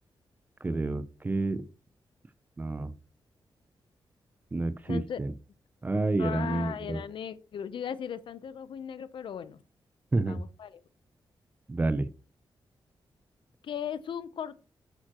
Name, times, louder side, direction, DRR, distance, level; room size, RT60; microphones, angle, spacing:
voice 1, 0.6-1.7 2.6-2.9 4.5-5.3 5.8-7.0 10.1-10.4 11.7-12.1, right 2 dB, 20° right, 0.5 m, -29 dB
voice 2, 4.9-5.2 6.2-9.6 10.2-10.8 13.6-14.5, left 8 dB, 75° left, 0.7 m, -37 dB
9.1 x 9.0 x 2.9 m
wide cardioid pair, 160°, 9 cm